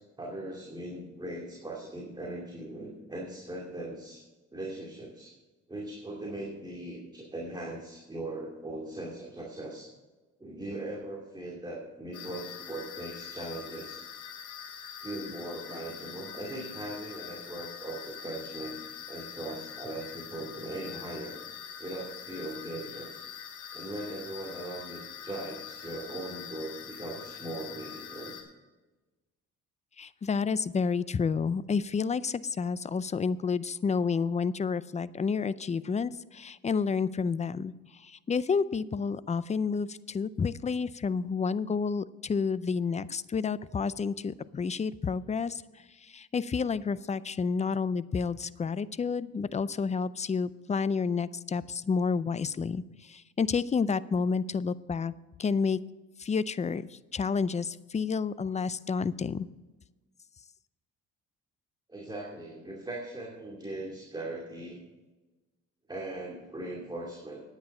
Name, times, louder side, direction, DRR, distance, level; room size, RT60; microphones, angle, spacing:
voice 1, 0.0-4.2 4.5-5.3 5.7-9.9 10.4-14.0 15.0-18.8 19.1-21.4 21.8-23.1 23.7-28.3 61.9-64.8 65.9-67.4, right 1 dB, 15° right, -2 dB, 2.4 m, -39 dB
sound 1, 12.1-28.4, left 8 dB, 90° left, 2.8 m, -44 dB
voice 2, 30.0-45.6 46.0-55.1 55.4-55.8 56.2-59.5, left 5 dB, 25° left, 17 dB, 0.4 m, -30 dB
10.5 x 9.0 x 5.5 m, 1.2 s
cardioid pair, 90°, 30 cm